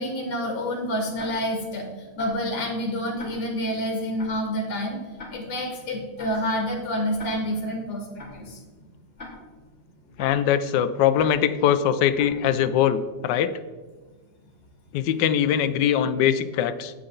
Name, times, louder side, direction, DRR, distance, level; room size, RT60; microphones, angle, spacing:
voice 1, 0.0-1.9 2.1-5.0 5.3-8.6, equal, 55° left, 2 dB, 2.6 m, -28 dB
Tick-tock, 1.2-1.3 2.2-2.3 3.2-3.3 4.2-4.3 5.2-5.3 6.2-6.3 7.2-7.3 8.2-8.3 9.2-9.3 10.2-10.3 11.2-11.3 12.2-12.3, left 3 dB, 30° left, 3.1 m, -40 dB
voice 2, 10.2-13.5 14.9-16.9, left 9 dB, 75° left, 12 dB, 1.2 m, -22 dB
9.8 x 8.8 x 3.9 m, 1.3 s
omnidirectional pair, 2.1 m